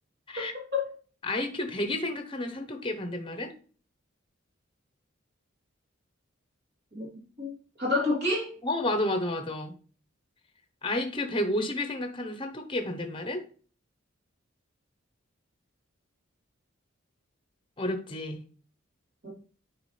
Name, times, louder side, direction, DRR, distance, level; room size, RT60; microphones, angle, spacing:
voice 1, 0.4-0.9 6.9-7.1 7.4-8.5 19.2-19.3, left 2 dB, 50° right, -2 dB, 3.2 m, -29 dB
voice 2, 1.2-3.5 8.6-9.7 10.8-13.4 17.8-18.4, left 1 dB, 25° left, 6 dB, 1.0 m, -31 dB
8.8 x 4.8 x 3.3 m, 0.41 s
head